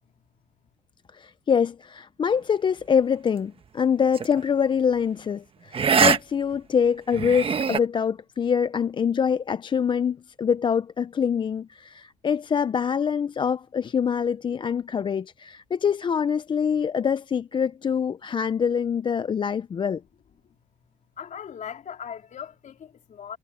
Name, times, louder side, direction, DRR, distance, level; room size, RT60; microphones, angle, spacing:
voice 1, 1.1-20.0, left 7 dB, 30° left, 0.4 m, -25 dB
sound 1, 4.1-4.4 5.7-6.2 6.5-6.6 7.1-7.8, right 6 dB, 35° right, 1.3 m, -22 dB
voice 2, 21.2-23.4, left 8 dB, 45° left, 3.8 m, -39 dB
cardioid pair, 110°, 17 cm